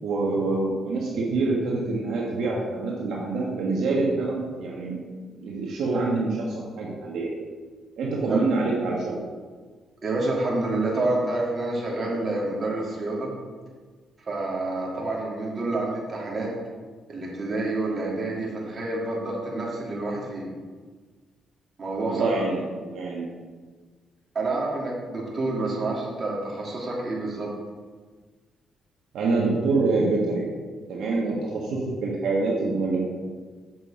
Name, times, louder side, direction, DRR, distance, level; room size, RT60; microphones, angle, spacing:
voice 1, 0.0-4.9 5.4-7.4 8.0-9.2 22.0-23.3 29.1-30.4 30.9-33.0, right 3 dB, 75° right, -3 dB, 1.5 m, -26 dB
voice 2, 10.0-13.3 14.3-16.5 17.1-20.5 21.8-22.4 24.3-27.5, right 2 dB, 35° right, -4 dB, 2.7 m, -28 dB
7.6 x 5.8 x 5.0 m, 1.4 s
cardioid pair, 90°, 0 cm